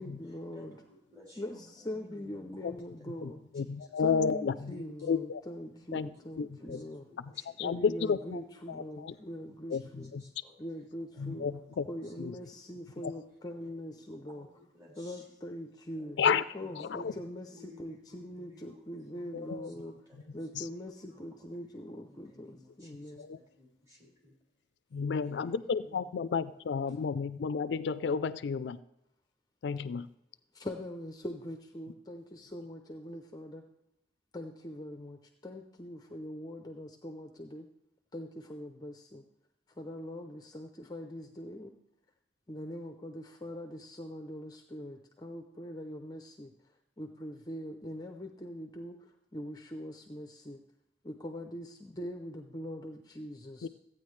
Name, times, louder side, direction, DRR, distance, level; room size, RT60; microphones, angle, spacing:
voice 1, 0.0-0.8 1.4-3.4 4.0-7.0 7.6-10.1 10.6-11.5 11.9-14.5 15.0-16.2 16.5-19.9 20.3-23.3 25.9-26.1 30.5-33.6 34.3-37.7 38.1-39.2 39.8-41.7 42.5-50.6 51.0-53.7, equal, 20° left, 4 dB, 0.6 m, -42 dB
voice 2, 0.5-3.1 3.5-4.0 4.7-5.1 5.7-7.5 7.9-8.1 8.7-10.5 11.1-12.1 12.4-12.5 12.9-13.1 14.0-15.3 15.9-20.4 21.1-21.5 22.1-24.3 24.9-25.6 26.6-27.1, left 1 dB, 20° right, -4 dB, 3.4 m, -58 dB
voice 3, 3.6-5.4 5.9-6.1 6.4-6.8 7.6-8.4 8.7-9.1 9.7-9.8 10.1-10.2 11.2-11.9 12.2-12.3 13.0-13.1 16.2-16.4 16.8-17.1 19.3-19.7 23.2-23.4 24.9-28.8 29.6-30.1 53.6-53.7, left 6 dB, 75° left, 14 dB, 0.4 m, -31 dB
14.5 x 8.9 x 3.2 m, 0.86 s
head